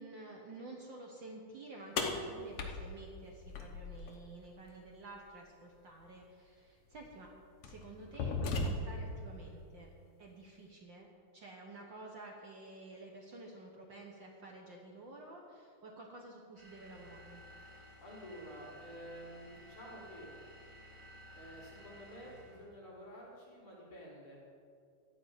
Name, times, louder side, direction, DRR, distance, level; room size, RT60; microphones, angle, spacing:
voice 1, 0.0-7.3 7.6-9.9 10.2-17.4, right 2 dB, 90° right, 0 dB, 1.0 m, -51 dB
sound 1, 2.0-4.1 6.0-6.1 6.9-7.1 7.6-9.1, left 3 dB, 60° left, 1.7 m, -36 dB
sound 2, 16.6-22.7, equal, 10° right, 3.3 m, -55 dB
voice 2, 18.0-20.3 21.3-24.4, equal, 40° left, -6 dB, 4.2 m, -50 dB
13.5 x 5.7 x 9.2 m, 2.3 s
omnidirectional pair, 4.0 m